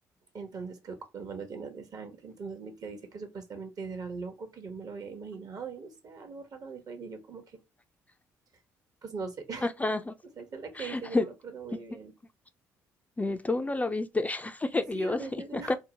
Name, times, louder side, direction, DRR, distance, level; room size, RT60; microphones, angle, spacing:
voice 1, 0.3-7.4 9.0-9.7 10.4-12.1 14.9-15.8, right 4 dB, 50° right, 0.9 m, -40 dB
voice 2, 9.6-10.1 10.8-11.3 13.2-15.8, left 2 dB, 20° left, 0.4 m, -30 dB
2.7 x 2.0 x 2.7 m
hypercardioid pair, 50°, 8 cm